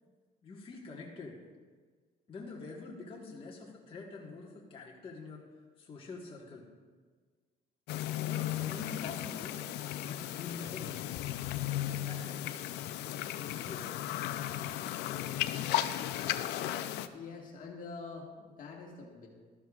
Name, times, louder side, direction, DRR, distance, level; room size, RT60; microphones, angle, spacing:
voice 1, 0.4-1.4 2.3-5.4 5.8-6.6 8.1-9.5 10.0-11.0 11.8-12.9 13.5-14.0, left 4 dB, 30° left, -3 dB, 1.5 m, -46 dB
sound 1, 7.9-17.1, left 13 dB, 85° left, 0.5 m, -35 dB
voice 2, 17.1-19.3, left 4 dB, 55° left, 0 dB, 1.7 m, -45 dB
13.0 x 12.0 x 2.4 m, 1.5 s
cardioid pair, 110°, 17 cm